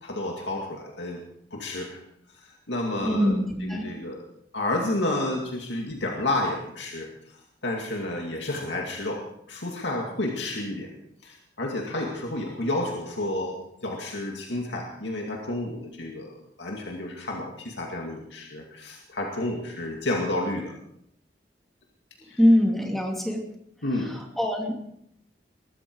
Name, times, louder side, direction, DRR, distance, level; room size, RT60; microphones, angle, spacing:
voice 1, 0.0-1.2 1.5-2.0 2.7-4.2 4.5-7.1 7.6-9.2 9.5-10.9 11.2-20.7 22.2-22.4 23.8-24.1, left 1 dB, 80° left, 0 dB, 2.4 m, -30 dB
voice 2, 3.0-3.9 22.4-23.4 24.4-24.9, equal, ahead, 1 dB, 2.5 m, -23 dB
21.5 x 14.0 x 4.7 m, 0.73 s
head